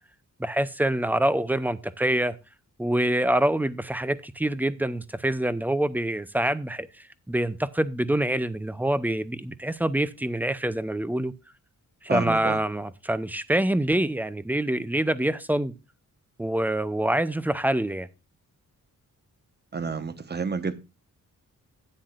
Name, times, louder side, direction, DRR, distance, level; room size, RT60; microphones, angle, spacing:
voice 1, 0.4-2.4 2.8-6.9 7.3-11.3 12.0-15.7 16.4-18.1, right 1 dB, 5° right, 0.6 m, -25 dB
voice 2, 12.1-12.6 19.7-20.8, right 5 dB, 30° right, 1.1 m, -29 dB
13.0 x 9.6 x 2.4 m
wide cardioid pair, 175°, 33 cm